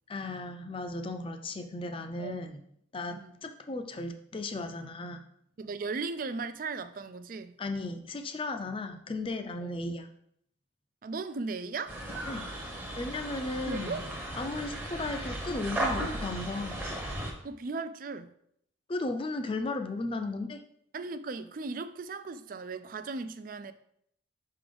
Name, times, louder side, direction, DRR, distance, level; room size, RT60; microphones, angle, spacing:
voice 1, 0.1-2.6 2.9-5.2 7.6-10.1 12.3-12.5 13.0-14.0 14.4-16.8 18.9-20.6, left 2 dB, 25° left, 0.5 m, -35 dB
voice 2, 5.6-7.6 9.6-9.8 11.0-12.0 13.7-14.0 14.4-14.6 17.4-18.3 20.9-23.7, right 4 dB, 45° right, 0.4 m, -37 dB
sound 1, 11.9-17.3, right 1 dB, 10° right, 0.8 m, -36 dB
5.9 x 3.8 x 5.1 m
head